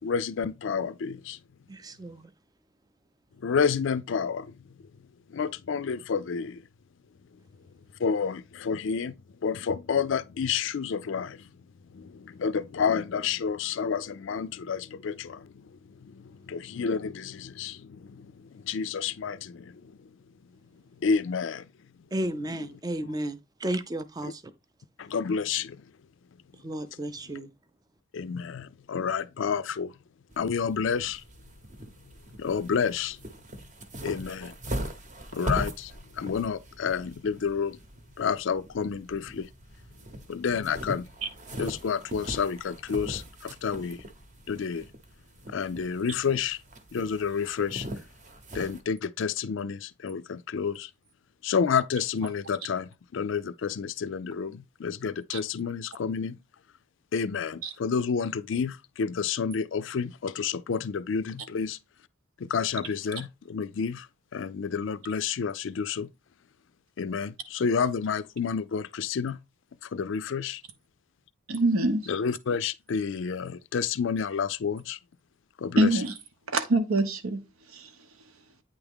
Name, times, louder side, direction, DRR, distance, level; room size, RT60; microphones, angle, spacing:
voice 1, 0.0-1.4 3.4-4.6 5.3-6.6 8.0-9.1 9.4-11.5 11.9-15.7 16.0-19.9 21.0-21.7 24.2-24.3 25.0-25.8 28.1-29.9 30.4-31.2 32.4-33.2 34.0-34.5 35.3-37.8 38.2-39.5 40.3-41.1 41.6-44.0 44.5-44.9 45.5-46.6 46.9-47.9 48.5-50.9 51.4-56.4 57.1-61.8 62.4-64.1 64.3-66.1 67.0-69.4 69.8-70.6 72.1-75.0 75.6-76.0, left 6 dB, 60° left, 0.4 m, -30 dB
voice 2, 1.7-2.3 22.1-24.4 26.6-27.5, right 1 dB, 20° right, 0.4 m, -33 dB
sound 1, 30.3-48.8, equal, 35° right, 0.9 m, -40 dB
voice 3, 71.5-72.0 75.8-76.1 76.5-77.4 77.7-77.9, right 2 dB, 85° right, 0.9 m, -24 dB
8.7 x 3.5 x 3.5 m
head